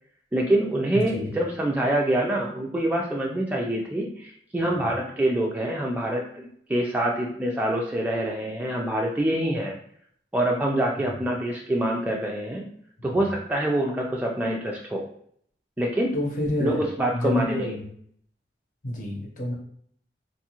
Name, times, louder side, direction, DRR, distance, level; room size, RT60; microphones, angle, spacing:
voice 1, 0.3-9.7 10.3-12.7 13.0-15.1 15.8-16.1 16.6-17.8, right 1 dB, 10° right, -2 dB, 0.3 m, -25 dB
voice 2, 0.9-1.3 11.0-11.1 16.1-16.8 17.1-17.8 18.8-19.5, left 1 dB, 50° left, -1 dB, 0.9 m, -28 dB
2.6 x 2.4 x 2.9 m, 0.65 s
head